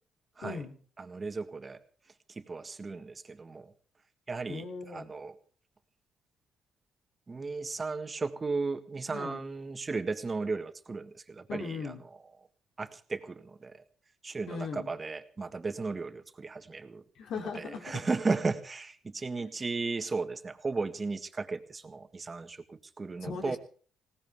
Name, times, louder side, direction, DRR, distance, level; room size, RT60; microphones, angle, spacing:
voice 1, 0.4-0.8 4.5-5.1 9.1-9.4 11.5-12.0 14.5-14.9 17.1-18.1 19.4-19.5 23.2-23.6, left 5 dB, 75° left, 3 dB, 3.2 m, -39 dB
voice 2, 1.0-1.8 2.3-3.7 4.3-5.4 7.3-11.9 12.8-13.8 14.2-17.0 17.5-23.6, right 4 dB, 30° right, 8 dB, 1.7 m, -35 dB
20.5 x 18.0 x 3.7 m, 0.43 s
cardioid pair, 90°, 0 cm